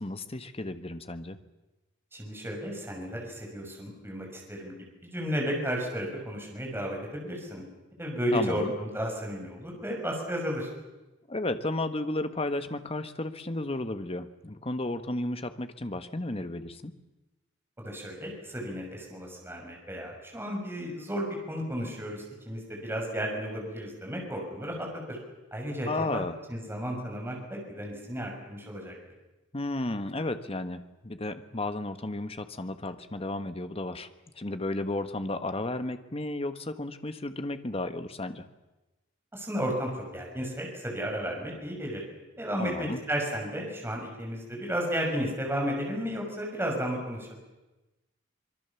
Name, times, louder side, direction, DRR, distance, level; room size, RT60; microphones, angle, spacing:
voice 1, 0.0-1.4 8.3-8.7 11.3-17.0 25.9-26.4 29.5-34.1 34.4-38.5 42.6-43.0, left 2 dB, 30° left, 10 dB, 1.3 m, -33 dB
voice 2, 2.1-4.7 5.0-7.6 8.0-10.7 17.8-25.2 25.5-26.2 26.5-28.9 39.3-42.0 42.4-47.4, equal, 10° right, 0 dB, 6.1 m, -33 dB
25.0 x 22.5 x 7.1 m, 1.1 s
head